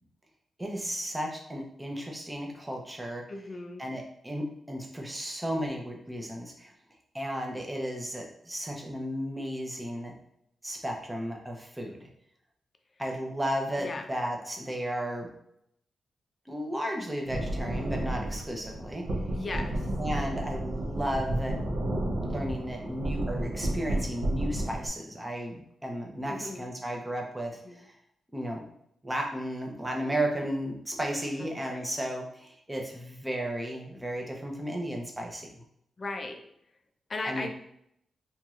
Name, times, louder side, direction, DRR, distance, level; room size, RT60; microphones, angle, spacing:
voice 1, 0.6-3.2 3.8-6.7 7.1-10.1 10.6-12.1 13.0-15.3 16.5-19.0 20.0-21.6 22.3-27.9 28.3-28.6 29.0-35.6 37.2-37.5, equal, 10° right, 0 dB, 0.7 m, -34 dB
voice 2, 3.3-3.8 13.8-14.0 19.3-19.9 26.3-26.7 27.6-27.8 31.4-31.9 36.0-36.5 37.1-37.5, left 3 dB, 30° left, 5 dB, 0.4 m, -37 dB
sound 1, 17.2-24.9, right 1 dB, 85° right, 1.0 m, -32 dB
4.3 x 3.0 x 2.4 m, 0.74 s
wide cardioid pair, 160°, 0 cm